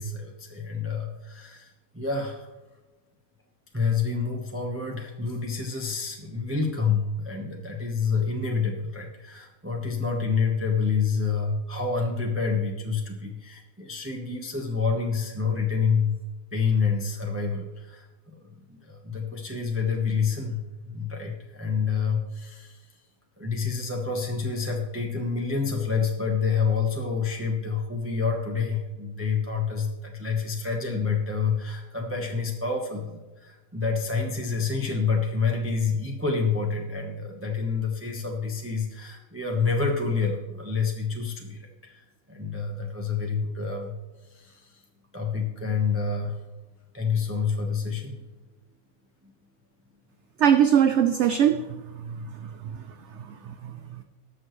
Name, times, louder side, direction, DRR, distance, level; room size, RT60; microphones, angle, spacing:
voice 1, 0.0-2.5 3.7-16.2 16.5-22.9 23.4-43.9 44.2-44.8 45.1-46.4 46.9-48.2 49.2-49.3 52.2-52.5 53.1-54.0, left 5 dB, 10° right, 0 dB, 0.8 m, -28 dB
voice 2, 50.4-51.7 52.0-52.8 53.2-53.4, right 9 dB, 65° right, 8 dB, 0.7 m, -21 dB
19.5 x 6.5 x 3.1 m, 1.2 s
omnidirectional pair, 1.6 m